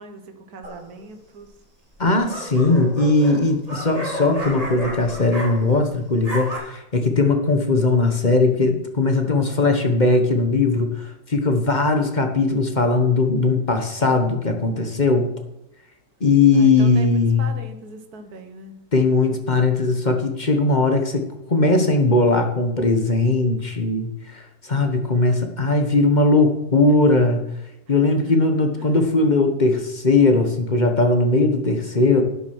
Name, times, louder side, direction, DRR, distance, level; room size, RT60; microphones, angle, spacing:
voice 1, 0.0-1.5 16.5-18.8 26.9-27.0 27.9-28.0 28.8-29.0, right 3 dB, 60° right, 6 dB, 1.8 m, -40 dB
sound 1, 0.6-1.1 2.0-5.9 6.1-6.6, right 1 dB, 20° right, 2.9 m, -32 dB
voice 2, 2.0-15.3 16.2-17.5 18.9-27.4 27.9-32.2, left 3 dB, 30° left, 5 dB, 1.3 m, -19 dB
11.5 x 9.6 x 6.2 m, 0.86 s
omnidirectional pair, 1.9 m